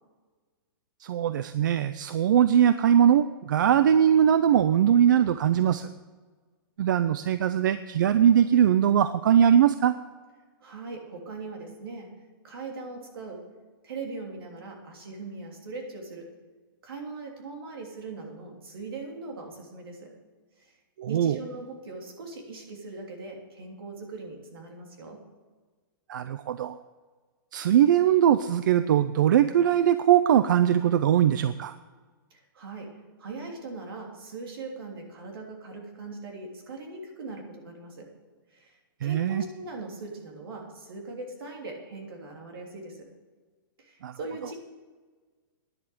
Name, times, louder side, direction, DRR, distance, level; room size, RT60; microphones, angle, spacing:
voice 1, 1.0-5.9 6.8-10.0 21.0-21.4 26.1-26.8 27.5-31.8 39.0-39.4 44.0-44.1, right 9 dB, 60° right, 13 dB, 0.4 m, -21 dB
voice 2, 10.6-12.1 12.4-13.4 13.8-16.3 16.8-20.1 20.6-20.7 21.1-25.2 32.3-38.1 38.5-43.1 43.8-44.5, right 3 dB, 80° right, 1 dB, 3.2 m, -40 dB
10.5 x 7.6 x 8.5 m, 1.4 s
hypercardioid pair, 170°, 12 cm